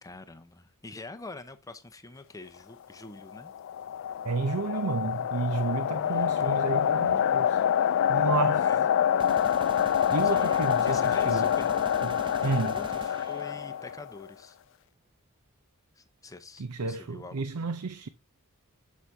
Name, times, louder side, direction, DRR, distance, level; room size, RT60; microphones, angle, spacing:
voice 1, 0.0-3.5 6.1-6.6 8.3-8.9 10.2-12.1 12.4-14.6 15.9-17.4, left 3 dB, 15° left, 0.6 m, -45 dB
sound 1, 3.3-14.2, left 9 dB, 60° left, 0.3 m, -26 dB
voice 2, 4.2-7.6 8.1-8.7 10.1-11.5 12.0-12.8 16.6-18.1, right 4 dB, 75° right, 0.6 m, -31 dB
sound 2, 9.2-13.9, right 4 dB, 20° right, 0.3 m, -44 dB
8.0 x 7.4 x 2.7 m
head